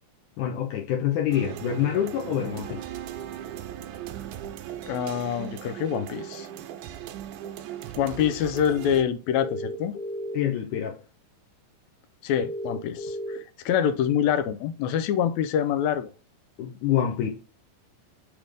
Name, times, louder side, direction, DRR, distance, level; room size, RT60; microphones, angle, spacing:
voice 1, 0.4-2.8 10.3-11.0 16.6-17.3, left 10 dB, 70° left, 2.3 m, -26 dB
sound 1, 1.3-9.0, right 11 dB, 80° right, 1.9 m, -38 dB
voice 2, 4.9-6.5 8.0-10.0 12.2-16.1, left 9 dB, 85° left, 1.6 m, -26 dB
sound 2, 9.3-10.3 12.4-13.4, equal, 50° left, 1.9 m, -33 dB
6.1 x 3.4 x 5.1 m
omnidirectional pair, 4.0 m